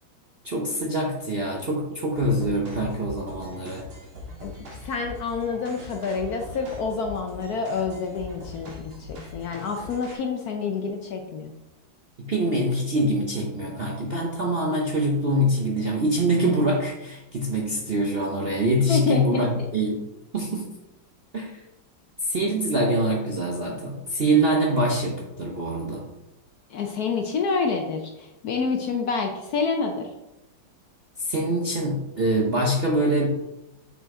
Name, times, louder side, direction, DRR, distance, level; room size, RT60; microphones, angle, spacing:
voice 1, 0.4-3.8 12.2-20.0 20.3-20.7 21.3-21.6 22.3-26.1 31.2-33.3, right 1 dB, 50° right, -2 dB, 0.7 m, -24 dB
sound 1, 2.2-10.2, left 2 dB, 85° right, 2.6 m, -41 dB
voice 2, 4.8-11.5 18.9-19.7 26.7-30.1, left 5 dB, 65° left, 3 dB, 1.0 m, -28 dB
6.4 x 5.3 x 3.7 m, 0.92 s
omnidirectional pair, 2.1 m